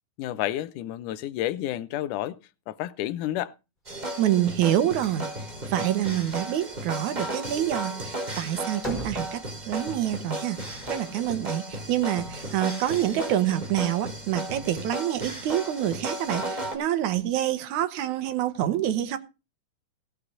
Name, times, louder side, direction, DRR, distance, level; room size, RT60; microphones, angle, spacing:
voice 1, 0.2-2.4 2.7-3.5, left 13 dB, 75° left, 2.2 m, -30 dB
sound 1, 3.9-16.8, right 1 dB, 15° right, 2.1 m, -35 dB
voice 2, 4.2-5.3 5.7-19.2, right 12 dB, 70° right, 2.3 m, -27 dB
sound 2, 4.9-5.2 5.6-6.0 7.4-9.9 10.6-11.3, equal, 15° left, 5.0 m, -40 dB
16.5 x 6.6 x 6.0 m
omnidirectional pair, 3.9 m